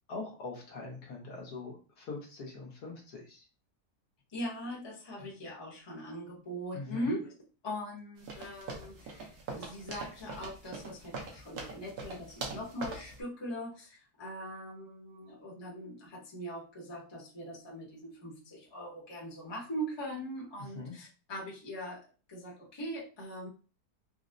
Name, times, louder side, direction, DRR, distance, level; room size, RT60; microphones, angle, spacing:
voice 1, 0.1-3.4 6.7-7.2 20.6-20.9, left 3 dB, 85° left, 0 dB, 1.5 m, -42 dB
voice 2, 4.3-7.3 7.6-22.0 22.3-23.5, equal, 20° left, -4 dB, 0.8 m, -41 dB
sound 1, 8.2-13.2, right 3 dB, 75° right, 1.3 m, -42 dB
3.9 x 2.0 x 2.5 m, 0.35 s
omnidirectional pair, 1.6 m